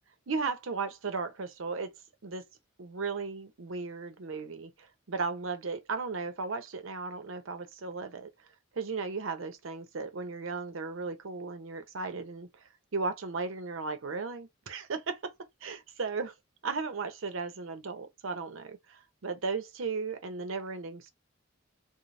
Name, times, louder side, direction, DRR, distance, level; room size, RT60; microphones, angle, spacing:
voice 1, 0.3-1.9 2.2-2.4 2.8-8.3 8.7-12.5 12.9-15.3 15.6-16.3 16.6-21.1, right 4 dB, 80° right, 0.7 m, -36 dB
3.2 x 2.1 x 2.5 m
head